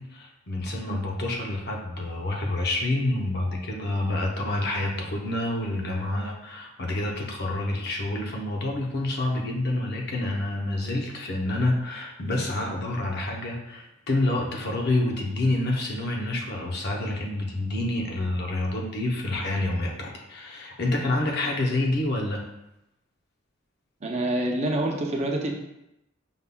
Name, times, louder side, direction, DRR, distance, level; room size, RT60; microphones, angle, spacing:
voice 1, 0.0-22.4, left 2 dB, 55° left, 0 dB, 0.7 m, -28 dB
voice 2, 24.0-25.5, right 1 dB, 35° right, 1 dB, 0.5 m, -26 dB
5.4 x 3.5 x 2.2 m, 0.88 s
head